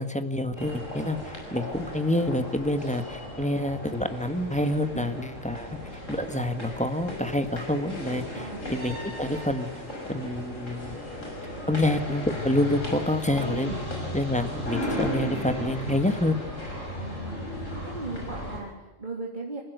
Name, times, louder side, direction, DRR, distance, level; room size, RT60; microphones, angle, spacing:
voice 1, 0.0-5.8 6.1-9.8 10.1-11.0 11.7-13.7 14.1-16.3, left 1 dB, 5° left, 8 dB, 1.5 m, -27 dB
sound 1, 0.6-18.6, left 1 dB, 80° left, 6.3 m, -35 dB
voice 2, 8.3-8.7 13.6-13.8 16.9-17.5 17.8-19.6, right 3 dB, 35° right, -2 dB, 3.5 m, -38 dB
27.5 x 15.5 x 8.1 m, 1.1 s
omnidirectional pair, 1.3 m